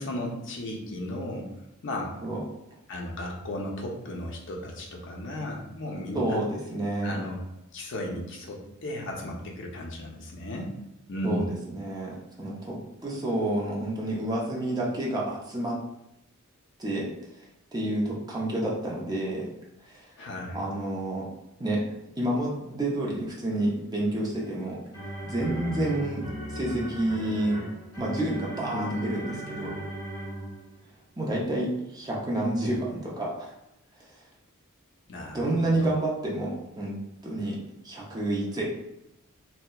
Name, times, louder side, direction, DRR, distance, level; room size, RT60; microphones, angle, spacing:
voice 1, 0.0-1.5 1.8-2.2 2.9-6.4 7.0-7.4 7.7-10.7 11.1-11.5 20.2-20.6 28.7-29.2 35.1-35.9, left 1 dB, 55° left, -1 dB, 0.5 m, -35 dB
voice 2, 6.1-7.2 11.2-11.5 11.7-15.8 16.8-17.1 17.7-19.5 19.8-20.0 20.5-21.3 21.6-21.8 22.2-24.8 25.2-27.6 28.0-29.8 31.2-33.5 34.1-34.2 35.3-38.6, right 1 dB, 20° right, -3 dB, 0.5 m, -29 dB
sound 1, 24.4-30.8, equal, 25° left, 1.4 m, -37 dB
2.7 x 2.1 x 2.2 m, 0.87 s
head